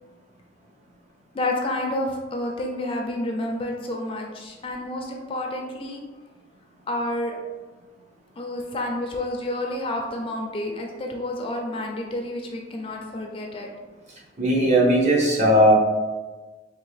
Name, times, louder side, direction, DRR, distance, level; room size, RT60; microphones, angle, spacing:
voice 1, 1.3-6.0 6.9-7.4 8.4-13.7, left 1 dB, 30° left, 1 dB, 0.4 m, -29 dB
voice 2, 14.4-15.7, equal, 40° right, -4 dB, 0.9 m, -17 dB
3.5 x 2.4 x 3.2 m, 1.3 s
head